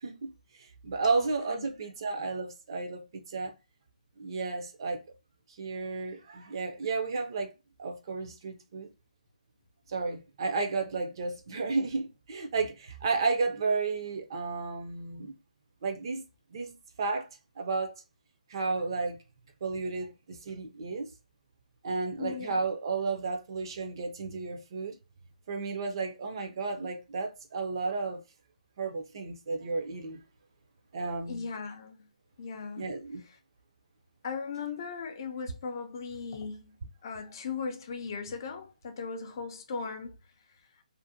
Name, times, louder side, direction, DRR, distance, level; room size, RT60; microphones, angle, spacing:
voice 1, 0.0-3.5 4.2-5.0 5.5-7.5 7.8-8.9 9.9-15.3 15.8-16.2 16.5-17.9 18.5-19.2 19.6-21.1 21.8-25.0 25.5-28.2 28.8-30.2 30.9-31.5 32.8-33.2, right 4 dB, 35° right, 0.4 m, -33 dB
voice 2, 1.2-1.7 22.2-22.5 31.3-32.0 32.4-32.9 34.2-36.8 37.0-40.2, left 5 dB, 30° left, 0.3 m, -38 dB
2.5 x 2.0 x 2.6 m
hypercardioid pair, 170°, 4 cm